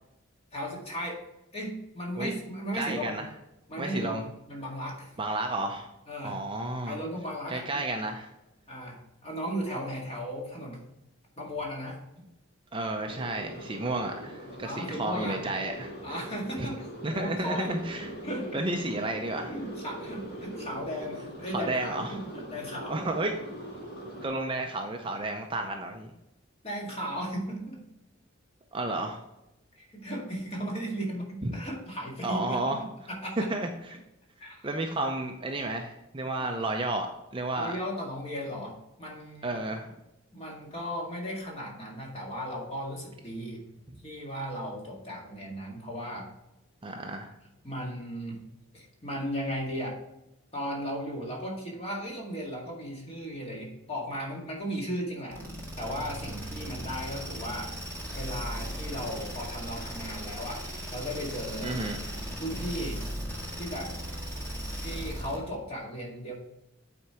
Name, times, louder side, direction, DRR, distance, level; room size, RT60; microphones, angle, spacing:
voice 1, 0.5-1.2 1.5-3.2 3.7-4.2 4.5-5.1 6.1-6.4 6.8-7.8 8.7-10.8 11.4-12.0 14.6-15.4 16.0-18.6 19.5-23.0 26.6-27.8 29.8-33.5 34.4-34.7 37.6-39.6 40.3-43.6 44.0-46.3 47.6-48.5 48.7-50.0 50.5-55.4 55.8-60.6 60.9-61.8 62.4-63.0 63.6-63.9 64.8-66.3, equal, 30° left, -2 dB, 1.9 m, -36 dB
voice 2, 2.7-3.3 3.8-4.2 5.2-5.9 6.2-7.0 7.5-8.3 12.7-16.2 16.6-16.7 17.0-18.1 18.5-19.5 21.5-22.2 22.9-23.3 24.2-26.1 28.7-29.2 31.4-31.5 32.2-32.8 33.5-34.0 34.6-37.8 39.4-39.9 46.8-47.3 61.6-62.0, right 2 dB, 25° right, 4 dB, 0.5 m, -32 dB
sound 1, 13.1-24.3, right 1 dB, 50° left, 2.1 m, -42 dB
sound 2, 55.3-65.5, right 1 dB, 10° left, 1.6 m, -37 dB
8.5 x 4.4 x 4.8 m, 0.90 s
head